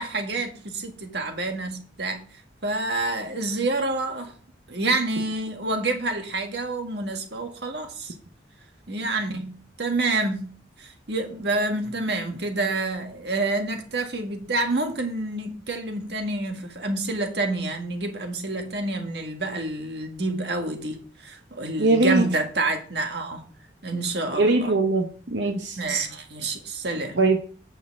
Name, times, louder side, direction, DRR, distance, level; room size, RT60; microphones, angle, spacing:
voice 1, 0.0-2.2 2.6-4.3 4.7-8.1 8.9-23.5 23.8-24.8 25.7-27.2, right 2 dB, 65° right, 1.7 m, -28 dB
voice 2, 21.8-22.2 24.3-25.8 27.2-27.4, right 2 dB, 85° right, 1.0 m, -21 dB
8.6 x 6.7 x 4.7 m
head